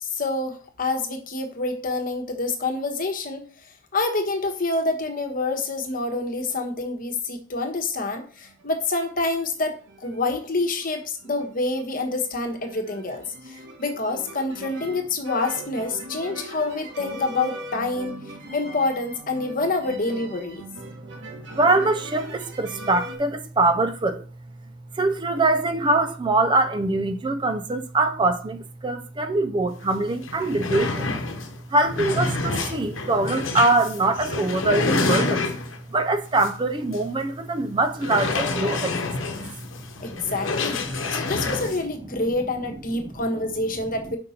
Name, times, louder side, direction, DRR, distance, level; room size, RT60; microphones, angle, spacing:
voice 1, 0.0-18.2 18.5-20.7 40.0-40.8 41.1-44.2, left 3 dB, 45° left, 1.1 m, -27 dB
sound 1, 8.5-9.3 9.6-23.2, right 1 dB, 60° right, 1.3 m, -40 dB
voice 2, 21.5-24.2 24.9-31.1 31.7-35.5 35.9-38.9 40.1-40.3, right 2 dB, 25° right, 0.4 m, -23 dB
sound 2, 29.8-29.9 30.2-35.9 36.4-36.5 36.9-37.0 38.0-41.8, left 3 dB, 80° left, 1.0 m, -28 dB
5.3 x 5.2 x 4.2 m
head